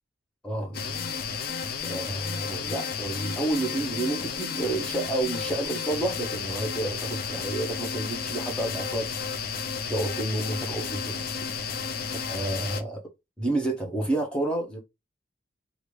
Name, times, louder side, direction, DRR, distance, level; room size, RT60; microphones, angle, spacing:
voice 1, 0.4-1.1 1.8-9.1 9.9-11.2 12.3-13.0 13.4-14.8, right 2 dB, 5° left, 0.8 m, -30 dB
sound 1, 0.7-12.8, left 6 dB, 50° left, 0.5 m, -32 dB
3.1 x 2.5 x 3.1 m
head